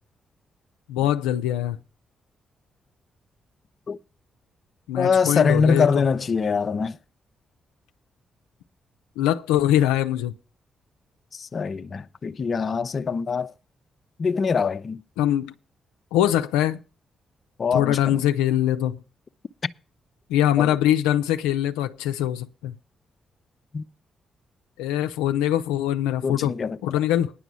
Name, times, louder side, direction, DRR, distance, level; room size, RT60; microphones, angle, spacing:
voice 1, 0.9-1.8 4.9-5.9 9.2-10.4 15.2-15.5 16.1-16.8 17.7-19.0 20.3-22.7 24.8-26.5 26.8-27.3, left 12 dB, 90° left, 0.6 m, -22 dB
voice 2, 5.0-7.0 11.3-13.5 14.2-15.0 17.6-18.2 20.6-20.8 23.7-23.9 26.2-26.8, left 5 dB, 50° left, 0.6 m, -23 dB
10.0 x 6.0 x 8.2 m
supercardioid pair, 50°, 0 cm